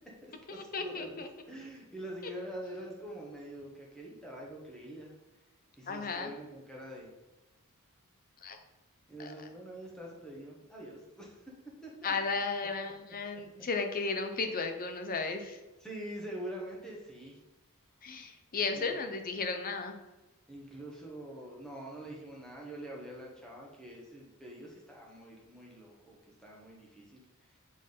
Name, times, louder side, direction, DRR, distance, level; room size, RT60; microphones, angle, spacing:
voice 1, 0.2-5.1 5.8-7.1 9.1-11.4 11.8-12.1 15.8-17.4 18.7-18.9 20.5-27.2, right 1 dB, 5° left, -3 dB, 1.2 m, -45 dB
voice 2, 0.7-1.3 5.9-6.3 8.4-8.6 9.2-9.5 12.0-15.6 18.0-19.9, left 4 dB, 40° left, 6 dB, 0.7 m, -34 dB
7.6 x 3.5 x 3.9 m, 1.0 s
head